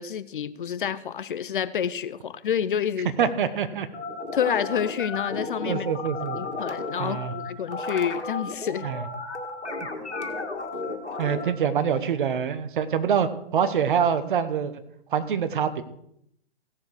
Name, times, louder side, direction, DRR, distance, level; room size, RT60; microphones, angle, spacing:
voice 1, 0.0-3.1 4.3-5.9 6.3-8.8, left 8 dB, 50° left, 15 dB, 0.6 m, -28 dB
voice 2, 3.2-3.9 5.6-6.4 7.0-7.3 8.8-9.0 11.2-14.7 15.1-15.8, right 7 dB, 50° right, 11 dB, 1.1 m, -25 dB
sound 1, 3.9-11.5, left 3 dB, 85° left, 2.2 m, -33 dB
16.5 x 7.0 x 4.8 m, 0.73 s
figure-of-eight pair, 125°, 33 cm